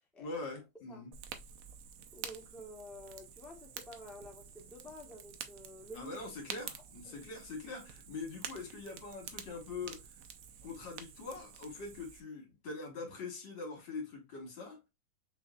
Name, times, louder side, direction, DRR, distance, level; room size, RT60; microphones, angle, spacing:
voice 1, 0.2-1.1 5.9-10.1 10.6-14.8, left 3 dB, 70° left, 2.2 m, -43 dB
Fire, 1.1-12.2, right 8 dB, 85° right, 0.7 m, -49 dB
voice 2, 2.1-6.2 7.0-7.3, left 1 dB, ahead, 0.6 m, -50 dB
6.2 x 2.6 x 2.2 m
omnidirectional pair, 2.1 m